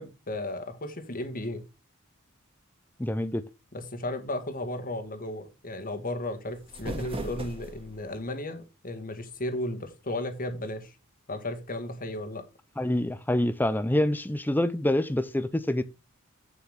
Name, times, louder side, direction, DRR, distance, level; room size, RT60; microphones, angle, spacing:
voice 1, 0.0-1.6 3.7-11.0 11.3-12.4, left 1 dB, 40° left, 1.9 m, -34 dB
voice 2, 3.0-3.4 12.8-15.8, left 1 dB, 10° left, 0.6 m, -26 dB
sound 1, 6.5-8.1, right 1 dB, 25° right, 2.2 m, -38 dB
8.5 x 7.5 x 3.6 m
head